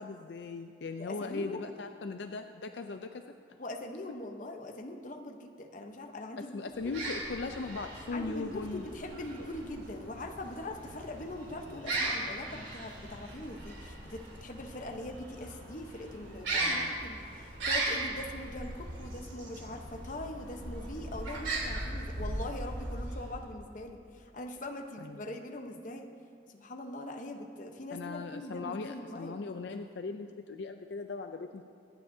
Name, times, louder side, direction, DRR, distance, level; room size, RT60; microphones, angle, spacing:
voice 1, 0.0-3.6 6.4-8.9 9.4-9.5 16.6-16.9 25.0-25.2 27.9-31.7, left 4 dB, 70° left, 6 dB, 0.4 m, -39 dB
voice 2, 1.0-1.6 3.6-6.9 8.1-26.1 26.5-29.4, left 1 dB, 45° left, 4 dB, 0.9 m, -42 dB
sound 1, 6.7-23.5, right 2 dB, 85° right, 2.9 m, -38 dB
24.5 x 9.4 x 2.7 m, 2.5 s
head